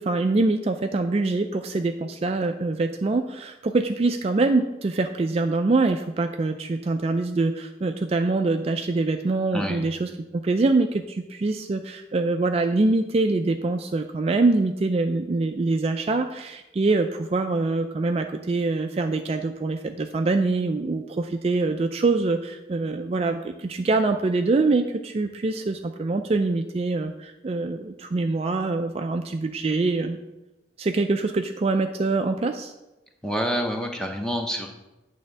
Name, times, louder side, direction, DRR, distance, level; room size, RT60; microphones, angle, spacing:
voice 1, 0.0-30.2 30.8-32.7, right 3 dB, 35° right, 6 dB, 0.3 m, -24 dB
voice 2, 9.5-9.9 33.2-34.7, equal, 5° left, 2 dB, 0.7 m, -27 dB
8.7 x 3.5 x 6.5 m, 1.0 s
head